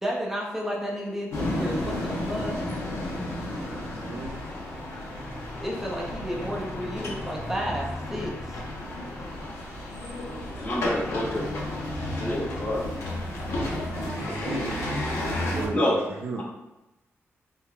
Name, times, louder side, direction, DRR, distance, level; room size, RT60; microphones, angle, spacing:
voice 1, 0.0-2.5 5.6-8.3, equal, 5° right, -3 dB, 0.6 m, -32 dB
sound 1, 1.3-15.7, left 1 dB, 75° left, 0.8 m, -32 dB
voice 2, 3.8-4.4 14.0-16.0 16.2-16.4, right 3 dB, 80° right, 0 dB, 0.5 m, -35 dB
voice 3, 10.6-11.5 12.2-12.8 15.7-16.0, left 1 dB, 35° left, -4 dB, 0.9 m, -27 dB
3.6 x 3.5 x 2.2 m, 1.0 s
wide cardioid pair, 135°, 5 cm